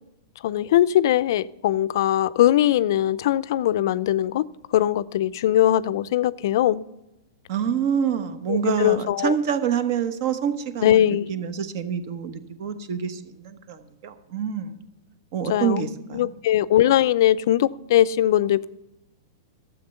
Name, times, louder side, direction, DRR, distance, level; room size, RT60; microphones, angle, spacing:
voice 1, 0.4-6.8 8.5-9.3 10.8-11.3 15.5-15.8 16.1-18.7, left 12 dB, 60° left, 18 dB, 0.4 m, -21 dB
voice 2, 7.5-14.8 15.3-16.3, right 7 dB, 55° right, 9 dB, 1.2 m, -27 dB
12.5 x 7.6 x 6.9 m, 0.98 s
hypercardioid pair, 135°, 2 cm